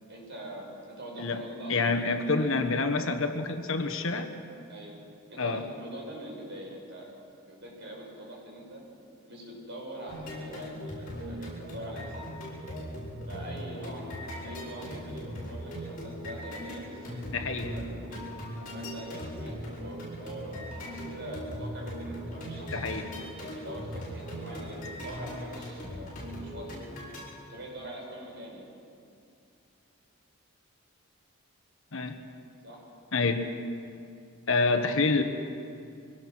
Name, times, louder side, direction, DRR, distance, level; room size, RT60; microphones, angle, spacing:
voice 1, 0.1-2.5 4.7-4.9 5.3-7.1 7.5-8.8 9.3-12.2 13.3-18.2 18.7-23.1 23.5-26.1 26.4-26.8 27.5-28.7 32.6-32.8, right 1 dB, 50° right, -2 dB, 5.7 m, -43 dB
voice 2, 1.7-4.3 5.4-5.6 17.3-17.7 22.7-23.1 31.9-32.2 33.1-33.5 34.5-35.2, left 3 dB, 60° left, 6 dB, 1.3 m, -27 dB
sound 1, 10.1-27.2, equal, 40° left, 6.6 m, -39 dB
24.0 x 18.0 x 6.3 m, 2.5 s
head